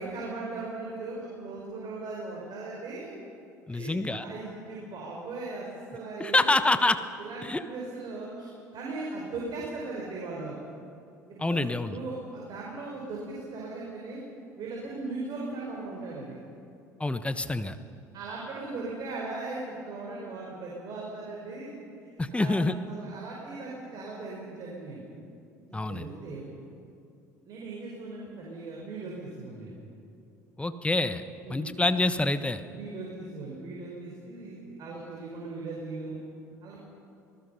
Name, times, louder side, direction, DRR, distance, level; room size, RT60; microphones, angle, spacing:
voice 1, 0.0-3.2 3.7-5.7 5.9-6.5 7.2-10.5 11.3-14.2 14.6-16.4 18.1-21.8 22.3-25.1 25.6-26.5 27.5-29.8 31.4-31.7 32.7-36.2 36.6-36.9, right 3 dB, 50° right, -3 dB, 5.0 m, -38 dB
voice 2, 3.7-4.2 6.2-7.0 7.4-7.6 11.4-12.0 17.0-17.8 22.2-22.7 25.7-26.1 30.6-31.2 31.5-32.6, left 2 dB, 15° left, 11 dB, 1.2 m, -26 dB
26.5 x 19.0 x 5.6 m, 2.7 s
hypercardioid pair, 60°, 9 cm